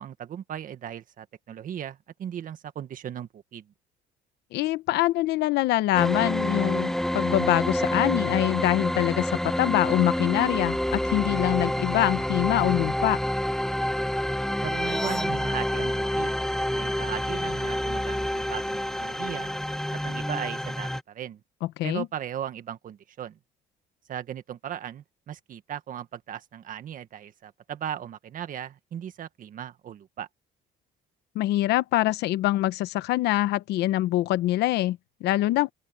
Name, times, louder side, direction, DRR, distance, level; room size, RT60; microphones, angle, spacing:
voice 1, 0.0-3.7 14.6-16.4 16.7-19.5 19.9-21.4 21.8-23.4 24.1-30.3, right 9 dB, 55° right, 1.8 m, -37 dB
voice 2, 4.5-13.2 21.8-22.1 31.3-35.7, left 15 dB, 80° left, 1.0 m, -24 dB
sound 1, 5.9-21.0, equal, 5° left, 1.4 m, -28 dB
open air
cardioid pair, 110°, 17 cm